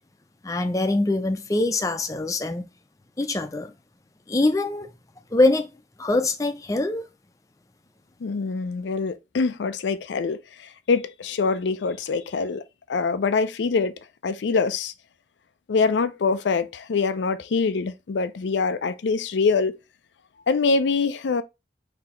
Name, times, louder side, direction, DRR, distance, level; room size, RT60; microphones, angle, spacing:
voice 1, 0.4-2.7 3.2-3.7 4.3-4.9 5.3-5.7 6.0-7.0, left 2 dB, 20° left, 0.5 m, -23 dB
voice 2, 8.2-14.9 15.7-19.8 20.5-21.4, left 4 dB, 90° left, 0.4 m, -24 dB
4.0 x 2.8 x 4.2 m
head